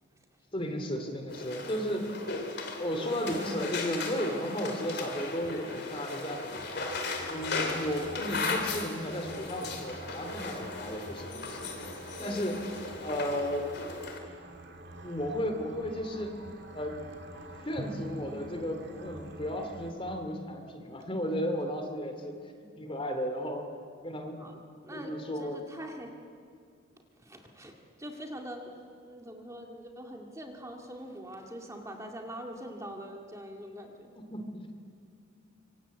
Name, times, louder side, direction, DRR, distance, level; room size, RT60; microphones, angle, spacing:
voice 1, 0.5-2.1 2.8-6.6 7.3-11.7 12.2-12.6 13.0-13.7 15.0-16.4 16.7-17.0 17.6-23.7 24.0-24.4 24.9-25.6 34.2-34.8, equal, 25° left, 5 dB, 2.6 m, -34 dB
sound 1, 1.3-14.2, left 3 dB, 55° left, 3.2 m, -37 dB
sound 2, 6.4-19.9, right 1 dB, 55° right, 2.2 m, -48 dB
voice 2, 12.2-12.5 24.4-26.1 27.2-28.6 29.0-34.1, equal, 15° right, 2 dB, 2.1 m, -43 dB
Drum, 17.8-20.5, equal, 35° right, 1.8 m, -45 dB
25.5 x 24.5 x 8.4 m, 2.3 s
head